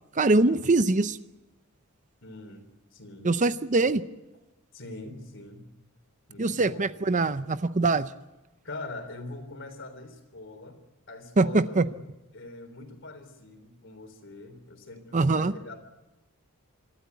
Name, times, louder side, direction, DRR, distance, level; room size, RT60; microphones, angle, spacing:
voice 1, 0.1-1.2 3.2-4.0 6.4-8.1 11.4-11.8 15.1-15.5, right 3 dB, 35° right, 13 dB, 0.7 m, -23 dB
voice 2, 2.2-3.3 4.7-5.7 6.3-6.9 8.6-10.8 11.1-11.9 12.3-15.8, left 2 dB, 60° left, 8 dB, 3.6 m, -43 dB
26.0 x 13.5 x 9.5 m, 1.0 s
head